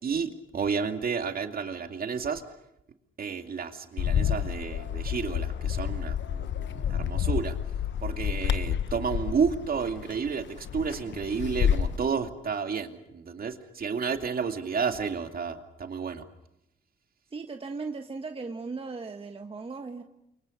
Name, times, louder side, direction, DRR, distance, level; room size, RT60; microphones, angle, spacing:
voice 1, 0.0-2.4 3.2-7.6 8.0-16.2, right 6 dB, 45° right, 6 dB, 2.6 m, -31 dB
Bird, 4.0-12.0, left 9 dB, 65° left, 1.0 m, -29 dB
voice 2, 17.3-20.0, right 4 dB, 30° right, 4 dB, 1.6 m, -37 dB
29.0 x 24.0 x 6.6 m, 0.82 s
cardioid pair, 90°, 20 cm